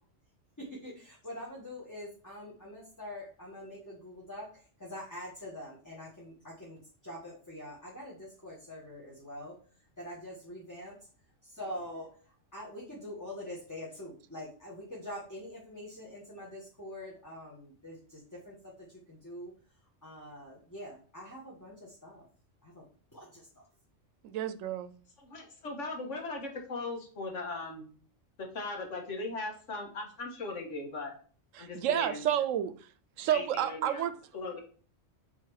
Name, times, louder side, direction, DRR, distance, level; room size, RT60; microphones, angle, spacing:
voice 1, 0.6-9.5 10.0-11.0 11.6-12.1 12.5-19.5 20.0-22.2 22.6-22.8 23.1-23.6, left 1 dB, 15° left, -5 dB, 1.5 m, -44 dB
voice 2, 24.2-24.9 31.5-34.1, right 10 dB, 85° right, 12 dB, 1.0 m, -31 dB
voice 3, 25.2-27.9 28.4-31.1 31.6-32.2 33.3-34.1 34.3-34.6, left 3 dB, 70° left, 2 dB, 1.8 m, -38 dB
5.7 x 3.7 x 4.7 m, 0.42 s
omnidirectional pair, 1.3 m